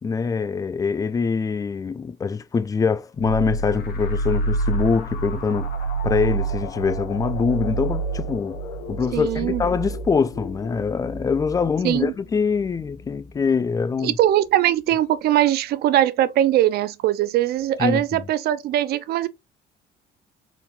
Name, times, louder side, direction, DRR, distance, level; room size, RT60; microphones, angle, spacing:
voice 1, 0.0-5.7 6.0-8.6 8.9-14.1 17.8-18.2, left 5 dB, 20° left, 0.3 m, -24 dB
sound 1, 3.2-14.5, right 2 dB, 65° left, 1.4 m, -29 dB
voice 2, 9.1-9.6 11.8-12.1 14.0-19.3, right 12 dB, 70° right, 0.5 m, -21 dB
4.2 x 4.0 x 2.3 m
cardioid pair, 110°, 17 cm